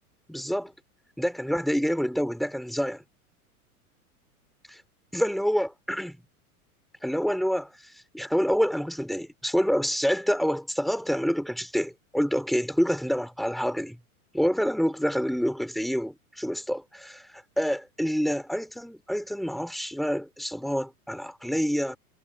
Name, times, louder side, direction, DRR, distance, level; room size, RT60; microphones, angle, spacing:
voice 1, 0.3-0.7 1.2-3.0 5.1-6.2 7.0-14.0 14.3-22.0, equal, ahead, 4.8 m, -27 dB
hypercardioid pair, 95°, 45 cm